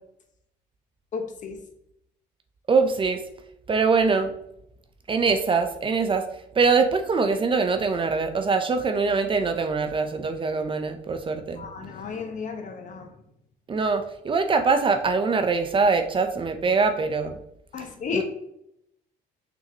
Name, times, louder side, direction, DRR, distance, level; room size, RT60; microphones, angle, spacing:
voice 1, 1.1-1.6 11.6-13.1 17.7-18.2, left 6 dB, 50° left, 5 dB, 1.2 m, -33 dB
voice 2, 2.7-3.2 3.7-4.3 5.1-6.2 6.6-11.6 13.7-17.4 18.1-18.2, right 4 dB, 30° right, 7 dB, 0.7 m, -23 dB
6.2 x 5.7 x 2.9 m, 0.78 s
cardioid pair, 110°, 17 cm